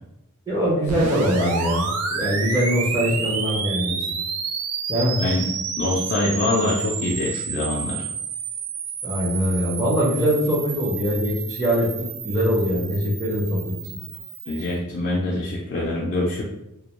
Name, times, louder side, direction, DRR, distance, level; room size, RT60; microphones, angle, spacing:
voice 1, 0.5-4.0 4.9-5.2 9.0-13.7, equal, 15° right, -7 dB, 0.5 m, -22 dB
sound 1, 0.9-14.7, right 5 dB, 85° right, 0.4 m, -30 dB
voice 2, 5.8-8.0 14.5-16.4, left 2 dB, 45° left, -4 dB, 0.3 m, -24 dB
2.2 x 2.1 x 2.9 m, 0.90 s
head